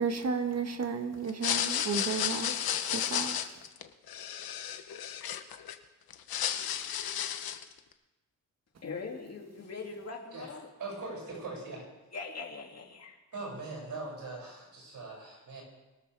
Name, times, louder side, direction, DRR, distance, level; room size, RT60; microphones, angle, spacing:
voice 1, 0.0-2.5 2.9-3.4, right 5 dB, 45° right, 6 dB, 1.6 m, -32 dB
sound 1, 1.3-5.7 6.1-7.7, left 10 dB, 85° left, 1.0 m, -33 dB
voice 2, 8.8-10.7 12.1-13.2, left 4 dB, 45° left, 0 dB, 2.7 m, -41 dB
voice 3, 10.8-11.8 13.3-15.6, right 3 dB, 65° right, -3 dB, 7.1 m, -41 dB
23.5 x 13.0 x 3.5 m, 1.1 s
cardioid pair, 115°, 35 cm